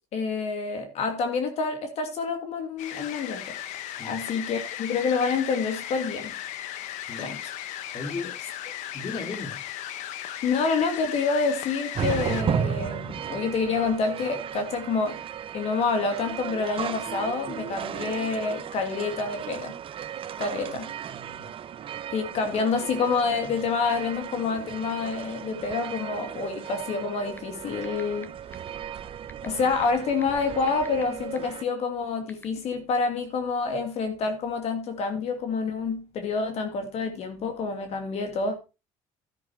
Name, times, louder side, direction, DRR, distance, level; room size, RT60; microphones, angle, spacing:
voice 1, 0.1-3.6 4.0-6.3 7.2-7.4 10.2-15.2 15.5-19.7 20.4-20.9 22.1-28.3 29.4-38.6, left 4 dB, 60° left, 2.6 m, -28 dB
sound 1, 2.8-12.4, left 12 dB, 80° left, 1.2 m, -36 dB
voice 2, 6.9-7.3 7.9-8.4 8.9-9.6 20.7-21.5, left 3 dB, 40° left, 2.5 m, -37 dB
sound 2, 11.9-31.6, right 8 dB, 45° right, 0.8 m, -35 dB
sound 3, 27.4-27.5 27.8-28.2 28.5-28.6 29.3-31.0 31.4-31.5 32.3-32.4, left 2 dB, 15° left, 1.4 m, -43 dB
13.0 x 6.5 x 4.6 m
cardioid pair, 95°, 12 cm